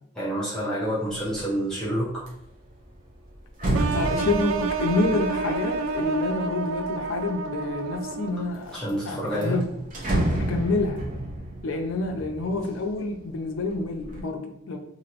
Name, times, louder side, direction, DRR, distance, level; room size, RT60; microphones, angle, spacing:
voice 1, 0.1-2.2 8.7-9.6, equal, 5° left, -11 dB, 0.7 m, -28 dB
sound 1, 1.2-1.5 1.9-7.3 7.9-8.5 8.9-9.0 9.3-13.2 13.6-14.2, right 1 dB, 40° right, 0.7 m, -31 dB
sound 2, 3.7-8.6, right 4 dB, 80° right, 0.3 m, -29 dB
voice 2, 3.9-8.8 9.1-9.6 10.4-11.0 11.6-14.8, left 2 dB, 70° left, 3 dB, 0.5 m, -28 dB
3.0 x 2.6 x 2.8 m, 0.75 s
head